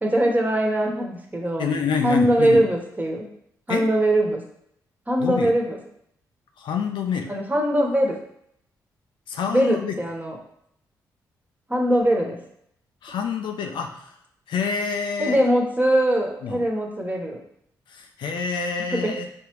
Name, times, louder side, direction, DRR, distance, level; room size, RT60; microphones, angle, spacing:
voice 1, 0.0-1.7 2.0-3.3 3.7-4.4 5.1-5.8 7.3-8.2 9.5-10.4 11.7-12.4 15.2-17.4 18.9-19.1, right 1 dB, 20° right, 0 dB, 1.3 m, -21 dB
voice 2, 1.6-2.7 3.7-3.8 5.2-5.5 6.6-7.3 9.3-10.0 13.0-14.1 14.5-15.4 16.4-16.6 17.9-19.3, left 5 dB, 70° left, 4 dB, 0.6 m, -27 dB
5.2 x 3.3 x 3.1 m, 0.71 s
supercardioid pair, 45°, 8 cm